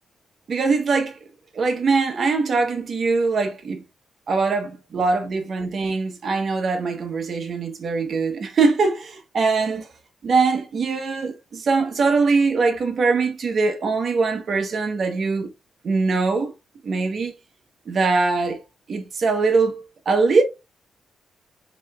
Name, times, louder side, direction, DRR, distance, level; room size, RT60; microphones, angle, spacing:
voice 1, 0.5-1.2 1.5-3.8 4.3-9.9 10.2-15.5 15.8-16.5 16.8-17.3 17.9-18.6 18.9-20.4, right 4 dB, 50° right, 1.0 m, -22 dB
4.1 x 2.9 x 3.4 m
cardioid pair, 115°, 0 cm